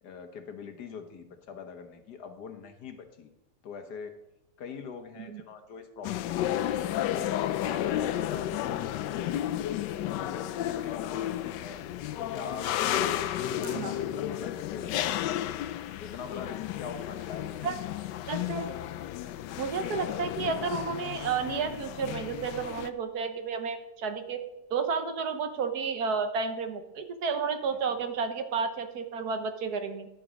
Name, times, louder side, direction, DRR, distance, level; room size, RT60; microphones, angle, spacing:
voice 1, 0.0-3.3 3.6-4.1 4.6-9.4 9.9-11.8 12.2-15.1 16.0-17.7 27.7-28.0, left 6 dB, 70° left, 7 dB, 1.6 m, -43 dB
sound 1, 6.0-22.9, left 12 dB, 85° left, 1.2 m, -32 dB
voice 2, 18.3-18.7 19.6-24.4 24.7-30.1, right 5 dB, 65° right, 8 dB, 1.4 m, -31 dB
11.0 x 7.8 x 5.0 m, 0.95 s
omnidirectional pair, 1.8 m